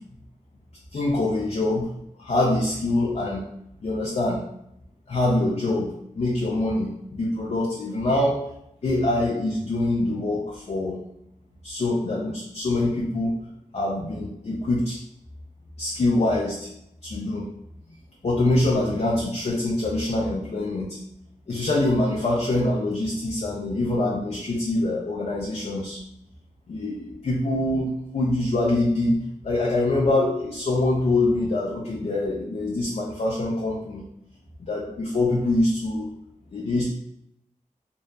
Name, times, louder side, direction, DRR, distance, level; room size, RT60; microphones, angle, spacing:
voice 1, 0.9-1.9 2.2-3.4 3.8-4.5 5.1-8.5 8.8-11.0 11.6-13.4 13.7-15.0 15.8-16.7 17.0-17.5 18.2-21.0 21.5-26.0 26.7-34.0 34.6-36.1 36.5-36.8, left 2 dB, 55° left, -3 dB, 0.4 m, -24 dB
2.6 x 2.2 x 2.2 m, 0.76 s
wide cardioid pair, 70°, 14 cm